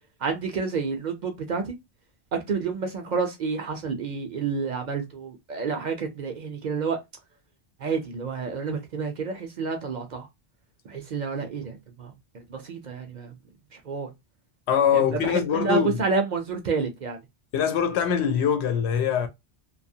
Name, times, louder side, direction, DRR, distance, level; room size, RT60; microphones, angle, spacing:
voice 1, 0.2-1.8 2.3-7.0 7.8-10.3 10.9-13.3 13.7-14.1 14.9-17.2, right 5 dB, 55° right, 0.5 m, -29 dB
voice 2, 14.7-16.0 17.5-19.3, left 8 dB, 85° left, 0.9 m, -23 dB
2.7 x 2.3 x 2.6 m
omnidirectional pair, 1.1 m